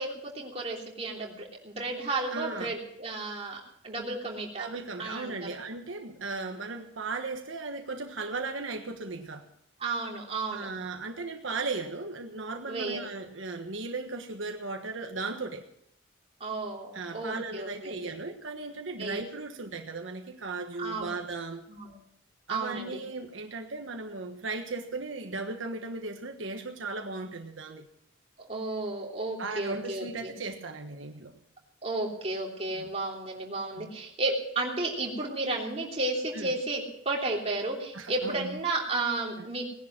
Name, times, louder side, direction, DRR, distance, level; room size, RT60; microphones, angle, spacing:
voice 1, 0.0-4.6 5.0-5.5 9.8-10.7 12.7-13.0 16.4-17.9 19.0-19.2 20.8-21.2 21.7-22.0 22.5-23.0 28.5-30.3 31.8-39.7, right 2 dB, 30° right, -1 dB, 3.2 m, -33 dB
voice 2, 2.3-2.7 4.6-9.5 10.5-15.6 16.9-21.6 22.5-27.9 29.4-31.3 32.7-32.9 33.8-33.9 36.3-36.5 37.9-38.6 39.4-39.5, right 3 dB, 85° right, 4 dB, 1.3 m, -36 dB
18.5 x 11.0 x 6.0 m, 0.71 s
head